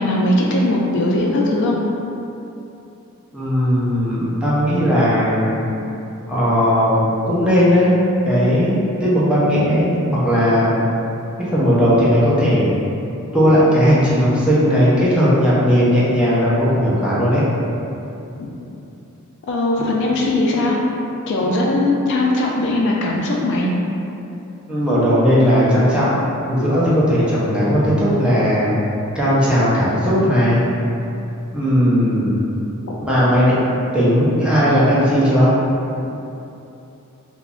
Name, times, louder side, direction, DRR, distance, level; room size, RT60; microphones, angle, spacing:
voice 1, 0.0-1.8 18.4-18.6 19.5-20.8 21.3-23.7, left 2 dB, 55° left, -2 dB, 0.3 m, -19 dB
voice 2, 3.3-5.6 6.3-7.9 8.2-10.8 11.5-12.7 13.3-17.4 24.7-26.1 26.4-28.7 29.1-30.6 31.5-32.5 33.0-33.6 33.9-35.5, equal, 5° right, -10 dB, 0.5 m, -16 dB
2.4 x 2.1 x 3.6 m, 2.8 s
head